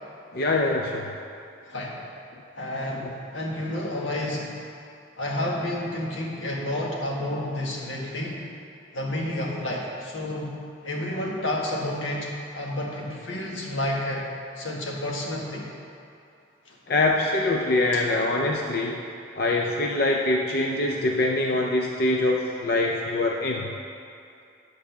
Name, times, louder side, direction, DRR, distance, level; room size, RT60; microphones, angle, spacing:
voice 1, 0.3-1.1 3.0-3.2 16.9-19.0 19.4-23.7, left 2 dB, 55° left, 0 dB, 0.5 m, -24 dB
voice 2, 2.6-4.6 5.2-8.4 8.9-10.5 10.8-12.3 12.5-14.2 14.6-15.7 17.9-18.0, left 1 dB, 90° left, -2 dB, 1.6 m, -30 dB
9.3 x 4.9 x 7.1 m, 2.5 s
head